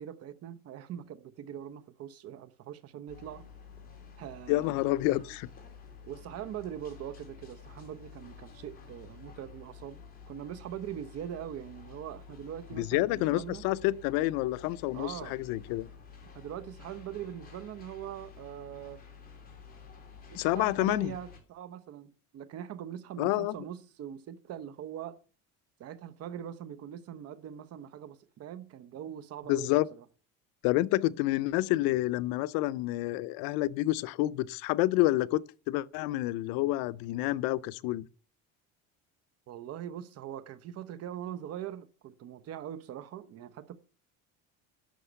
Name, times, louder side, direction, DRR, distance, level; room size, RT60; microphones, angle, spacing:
voice 1, 0.0-3.5 4.2-4.8 6.0-13.6 14.9-15.4 16.2-19.0 20.3-25.2 25.8-30.0 39.5-43.8, right 10 dB, 45° right, 1.0 m, -42 dB
sound 1, 3.1-21.4, left 6 dB, 25° left, 3.6 m, -51 dB
voice 2, 4.5-5.5 12.7-15.9 20.3-21.1 23.2-23.5 29.5-29.9 30.6-38.1, left 17 dB, 90° left, 0.7 m, -28 dB
11.5 x 6.5 x 8.0 m
cardioid pair, 160°, 34 cm